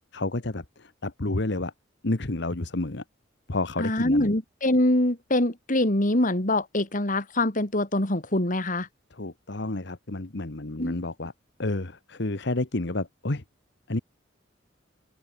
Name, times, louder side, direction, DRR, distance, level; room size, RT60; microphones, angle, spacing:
voice 1, 0.1-1.7 2.0-3.0 3.5-4.3 9.1-11.3 11.6-13.4 13.9-14.0, left 2 dB, 65° left, 1.4 m, -30 dB
voice 2, 3.8-8.9 10.8-11.0, left 1 dB, 45° left, 3.0 m, -24 dB
head